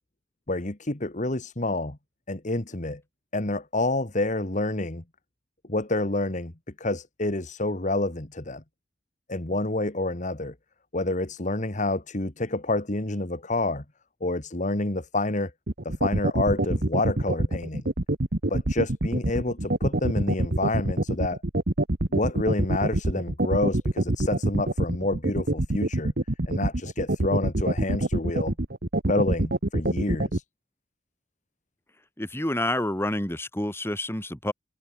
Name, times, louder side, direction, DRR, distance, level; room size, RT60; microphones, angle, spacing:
voice 1, 0.5-2.0 2.3-3.0 3.3-5.0 5.7-6.5 6.8-8.6 9.3-10.5 10.9-13.8 14.2-15.5 15.9-17.8 18.5-21.4 22.1-26.1 26.5-28.5 29.1-30.4, left 2 dB, 45° left, 1.9 m, -28 dB
sound 1, 15.7-30.4, right 1 dB, 60° right, 1.5 m, -25 dB
voice 2, 32.2-34.5, left 1 dB, 15° left, 4.5 m, -28 dB
head